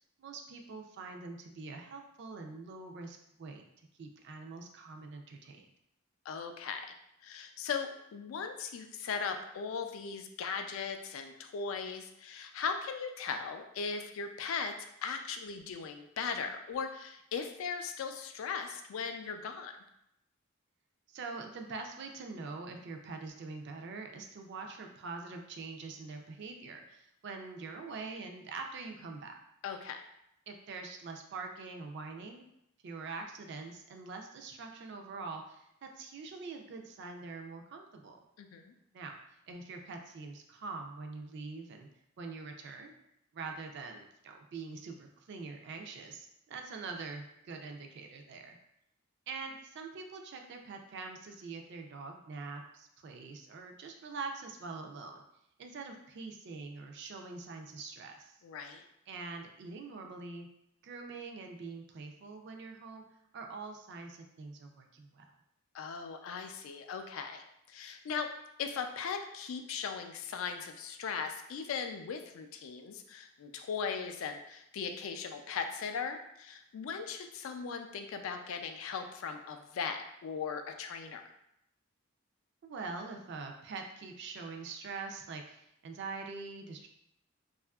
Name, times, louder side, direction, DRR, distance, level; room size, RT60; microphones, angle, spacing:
voice 1, 0.2-3.6 4.0-5.7 21.1-29.3 30.5-32.4 32.8-38.2 38.9-39.2 39.5-41.9 42.2-42.9 43.3-48.6 49.3-55.2 55.6-58.4 59.1-60.5 60.8-63.0 63.3-65.3 82.6-86.9, right 4 dB, 55° right, 3 dB, 0.3 m, -44 dB
voice 2, 6.3-6.9 7.2-14.7 15.0-19.7 29.6-30.0 38.4-38.7 58.4-58.8 65.7-68.3 68.6-81.2, left 6 dB, 75° left, 6 dB, 0.3 m, -38 dB
2.7 x 2.4 x 2.2 m, 0.79 s
head